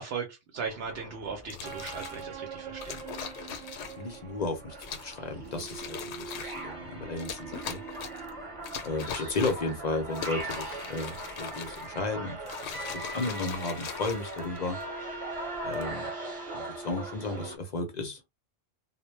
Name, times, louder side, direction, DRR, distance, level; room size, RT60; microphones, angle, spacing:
voice 1, 0.0-3.0, right 5 dB, 70° right, 0.8 m, -37 dB
sound 1, 0.6-17.6, right 2 dB, 30° right, 0.8 m, -40 dB
sound 2, 1.4-2.2 2.8-4.2 4.8-5.2 5.5-6.6 7.2-8.3 8.6-9.7 10.1-12.0 12.4-14.8 15.5-15.9, left 7 dB, 80° left, 0.8 m, -40 dB
voice 2, 3.9-7.8 8.8-14.8 15.6-16.1 16.5-18.2, left 2 dB, 50° left, 0.6 m, -34 dB
2.1 x 2.1 x 3.1 m
omnidirectional pair, 1.1 m